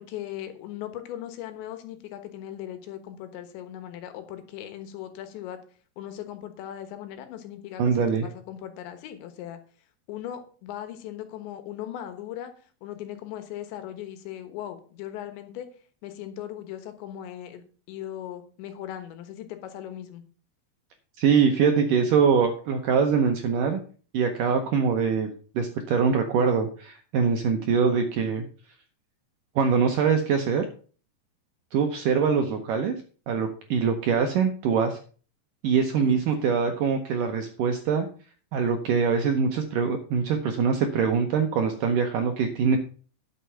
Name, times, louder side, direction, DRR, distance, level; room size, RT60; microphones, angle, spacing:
voice 1, 0.0-5.6 6.0-7.8 8.2-9.6 10.1-12.5 12.8-15.7 16.0-20.2 36.0-36.5, left 11 dB, 90° left, 9 dB, 3.6 m, -38 dB
voice 2, 7.8-8.3 21.2-23.8 24.1-25.3 25.6-28.5 29.6-30.7 31.7-32.9 33.3-35.0 35.6-38.1 38.5-42.8, right 6 dB, 80° right, 5 dB, 1.9 m, -23 dB
11.5 x 6.7 x 5.7 m, 0.41 s
omnidirectional pair, 5.0 m